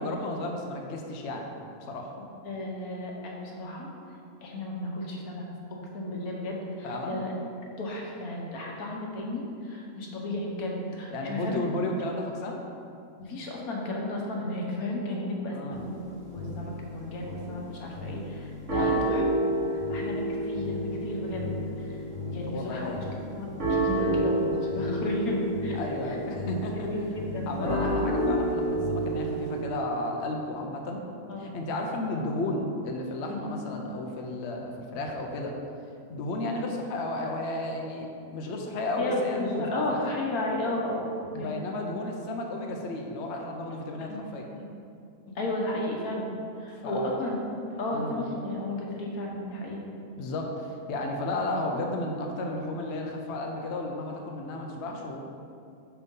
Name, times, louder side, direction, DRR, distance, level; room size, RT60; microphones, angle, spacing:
voice 1, 0.0-1.5 1.9-2.1 6.8-7.2 11.1-12.6 15.5-15.8 18.8-19.0 22.5-23.0 25.7-26.9 27.5-31.0 31.4-35.5 36.1-40.0 41.3-44.5 46.7-47.2 47.9-48.2 50.2-55.2, left 2 dB, 55° left, 1 dB, 0.9 m, -33 dB
voice 2, 2.2-3.9 4.4-5.4 5.7-7.3 7.8-11.6 13.2-16.0 16.3-19.6 19.9-22.0 22.3-23.0 23.3-26.1 26.7-27.9 31.3-31.5 33.3-33.6 39.0-41.5 45.3-46.3 46.6-47.4 47.8-49.8, left 1 dB, 85° left, -1 dB, 1.5 m, -33 dB
sound 1, 15.7-16.8 17.2-17.5 17.9-18.4 18.7-29.6, right 1 dB, 55° right, 2.3 m, -30 dB
10.5 x 4.0 x 3.8 m, 2.5 s
omnidirectional pair, 1.5 m